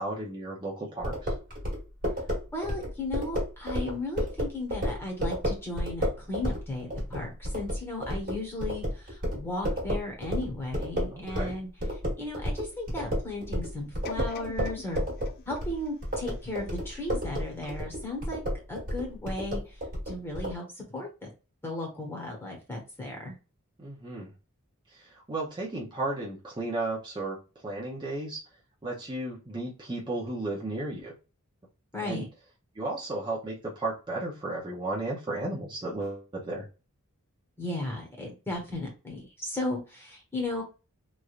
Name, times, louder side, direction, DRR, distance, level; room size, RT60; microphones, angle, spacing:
voice 1, 0.0-1.3 11.1-11.6 23.8-24.3 24.9-28.4 28.8-31.1 32.0-32.3 32.7-36.7, right 2 dB, 20° right, -5 dB, 0.6 m, -34 dB
sound 1, 1.0-11.6 11.8-20.6, equal, 40° right, 1.2 m, -31 dB
voice 2, 2.5-11.7 12.2-15.0 15.5-18.4 18.7-19.8 20.1-21.3 21.6-23.3 31.9-32.2 37.6-40.6, left 2 dB, 10° left, 0 dB, 1.1 m, -35 dB
sound 2, 14.0-17.1 17.7-17.8, left 6 dB, 45° left, 0.3 m, -44 dB
3.1 x 2.5 x 2.4 m, 0.31 s
head